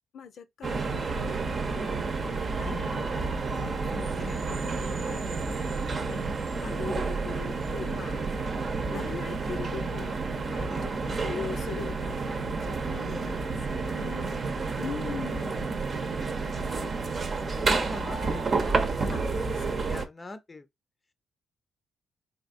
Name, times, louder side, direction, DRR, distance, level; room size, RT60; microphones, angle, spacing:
voice 1, 0.1-1.3 1.6-3.2 3.5-4.2 4.5-8.6 8.9-14.3 14.8-15.7 19.1-20.0, left 7 dB, 65° left, 0.7 m, -42 dB
sound 1, 0.6-20.1, right 4 dB, 45° right, 0.8 m, -30 dB
voice 2, 14.2-15.0 15.8-15.9 16.6-19.5 19.8-20.7, left 2 dB, 25° left, 0.7 m, -44 dB
4.3 x 3.3 x 2.6 m
cardioid pair, 90°, 0 cm